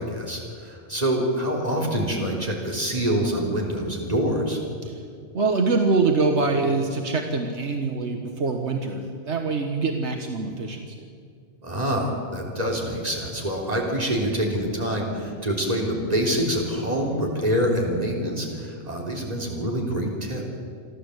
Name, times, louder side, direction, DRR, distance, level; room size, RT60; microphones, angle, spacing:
voice 1, 0.0-4.6 11.6-20.4, equal, 35° right, -1 dB, 3.7 m, -26 dB
voice 2, 5.3-11.0, right 3 dB, 75° right, 4 dB, 1.6 m, -24 dB
28.0 x 12.0 x 8.0 m, 2.2 s
omnidirectional pair, 1.2 m